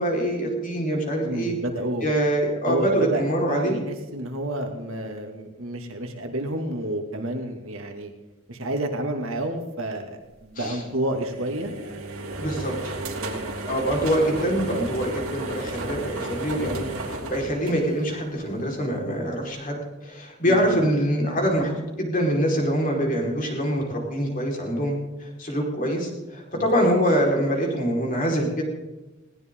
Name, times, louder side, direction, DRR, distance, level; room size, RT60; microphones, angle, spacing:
voice 1, 0.0-1.5 2.0-3.8 10.5-10.8 12.4-12.9 13.7-24.9 25.2-28.6, equal, 40° left, 0 dB, 4.8 m, -24 dB
voice 2, 1.2-2.1 2.7-8.1 8.5-11.7 13.1-13.5 20.4-20.8 26.6-26.7, right 1 dB, 70° right, 3 dB, 2.5 m, -30 dB
sound 1, 11.1-18.4, right 2 dB, 85° right, 3.4 m, -33 dB
20.5 x 18.0 x 3.9 m, 1.1 s
head